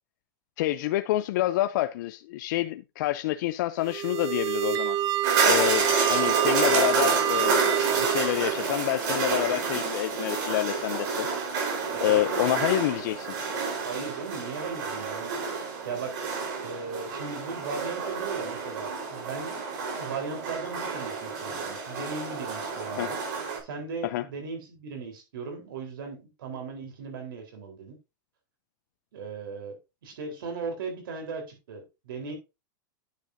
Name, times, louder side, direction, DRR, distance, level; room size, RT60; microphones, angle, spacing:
voice 1, 0.6-5.0 5.4-7.6 8.0-11.3 12.0-13.3 23.0-23.1 24.0-24.2, left 15 dB, 60° left, 0.5 m, -27 dB
sound 1, 3.8-8.7, right 11 dB, 30° right, 0.6 m, -28 dB
sound 2, 5.2-23.6, right 5 dB, 60° right, 4.2 m, -29 dB
voice 2, 11.9-12.8 13.8-15.3 15.8-16.2 16.6-19.7 19.9-23.2 23.6-28.0 29.1-32.3, right 5 dB, 85° right, 3.9 m, -37 dB
9.8 x 7.5 x 2.7 m
supercardioid pair, 160°, 11 cm